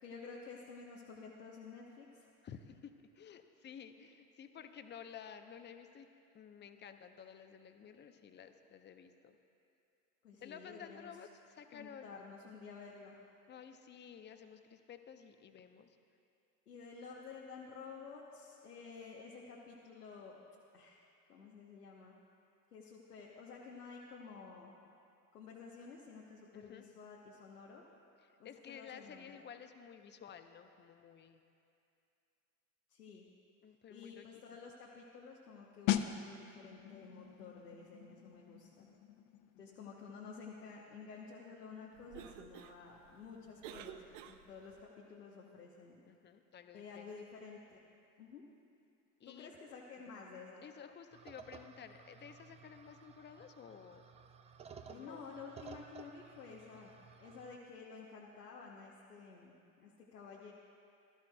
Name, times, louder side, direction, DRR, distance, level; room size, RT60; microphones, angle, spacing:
voice 1, 0.0-2.3 10.2-11.1 11.7-13.2 16.7-20.4 20.7-21.0 21.3-22.2 22.7-24.8 25.3-27.8 28.4-29.4 32.9-33.2 33.9-38.9 39.6-46.0 46.7-47.8 48.2-48.4 49.2-50.7 54.9-56.9 57.2-60.5, left 5 dB, 85° left, -3 dB, 1.1 m, -52 dB
voice 2, 2.4-6.1 6.3-9.3 10.4-12.2 13.5-16.0 26.5-26.8 28.2-31.4 33.6-34.3 34.5-34.6 46.0-47.1 49.2-49.5 50.6-54.0 54.9-55.3, left 7 dB, 25° left, 8 dB, 0.7 m, -53 dB
sound 1, 35.9-46.4 46.6-46.9, left 11 dB, 65° left, 0.7 m, -43 dB
Cough, 41.9-44.8, right 10 dB, 55° right, 0.7 m, -53 dB
sound 2, 51.1-57.6, right 6 dB, 15° right, 0.3 m, -55 dB
20.0 x 13.0 x 2.3 m, 2.6 s
figure-of-eight pair, 70°, 46 cm